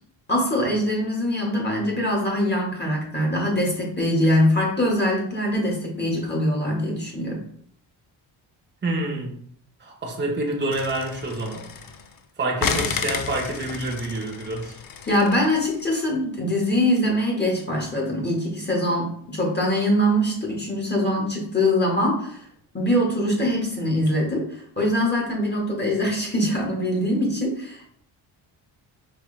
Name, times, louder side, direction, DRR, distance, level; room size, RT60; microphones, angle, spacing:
voice 1, 0.3-7.4 15.1-22.5 22.7-27.9, left 1 dB, 20° left, 1.8 m, -23 dB
voice 2, 8.8-9.4 9.8-11.7 12.4-14.8, right 2 dB, 20° right, 1.2 m, -27 dB
sound 1, 10.7-12.2 12.6-15.9, left 6 dB, 45° left, 0.6 m, -31 dB
4.9 x 3.2 x 3.3 m
cardioid pair, 85°, 47 cm